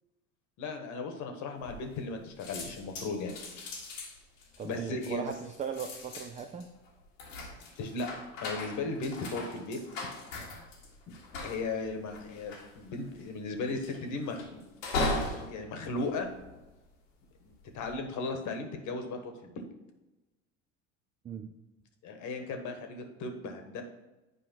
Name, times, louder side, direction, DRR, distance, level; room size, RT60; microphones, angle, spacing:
voice 1, 0.6-3.3 4.6-5.3 7.8-8.1 8.4-9.8 11.1-11.2 11.4-14.6 15.2-16.3 17.4-19.6 22.0-23.8, left 3 dB, 50° left, 5 dB, 1.4 m, -36 dB
sound 1, 1.6-2.1 2.4-17.0 17.5-17.9, left 2 dB, 80° left, 1.6 m, -39 dB
voice 2, 4.6-6.7 21.2-21.5, right 6 dB, 20° right, 6 dB, 0.5 m, -38 dB
8.4 x 4.7 x 4.5 m, 1.0 s
hypercardioid pair, 75°, 38 cm